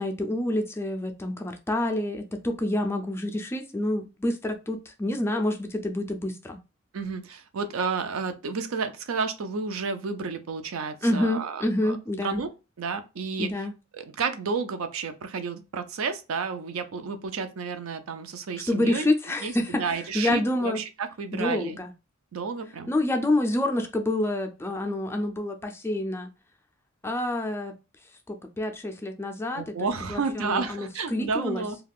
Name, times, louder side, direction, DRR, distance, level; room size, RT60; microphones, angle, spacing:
voice 1, 0.0-6.6 11.0-12.4 13.4-13.7 18.7-20.8 21.3-21.9 22.9-26.3 27.0-27.7 28.3-31.6, left 1 dB, 10° left, 0.3 m, -28 dB
voice 2, 6.9-12.0 12.2-12.5 12.8-13.5 13.9-19.1 19.4-21.8 22.3-22.9 29.5-31.8, right 5 dB, 75° right, 0.5 m, -31 dB
2.4 x 2.3 x 3.4 m
head